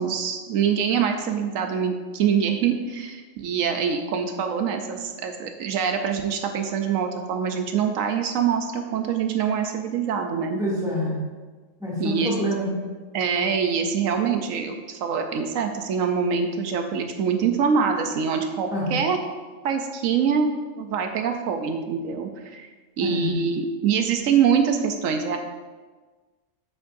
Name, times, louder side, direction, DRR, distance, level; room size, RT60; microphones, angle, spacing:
voice 1, 0.0-10.6 12.0-12.3 13.1-19.2 19.6-22.7 23.0-25.4, right 6 dB, 85° right, 5 dB, 1.1 m, -24 dB
voice 2, 10.6-11.2 11.8-12.7 18.7-19.0 23.0-23.3, equal, 5° right, -8 dB, 2.3 m, -26 dB
8.3 x 7.9 x 2.6 m, 1.4 s
omnidirectional pair, 1.3 m